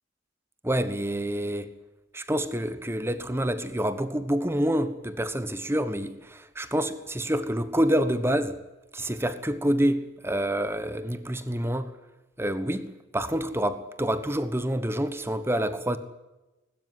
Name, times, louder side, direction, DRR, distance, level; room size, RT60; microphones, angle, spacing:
voice 1, 0.6-1.7 2.1-8.6 8.9-11.9 12.4-12.9 13.1-16.0, right 1 dB, 15° right, 1.3 m, -27 dB
21.5 x 13.0 x 9.7 m
head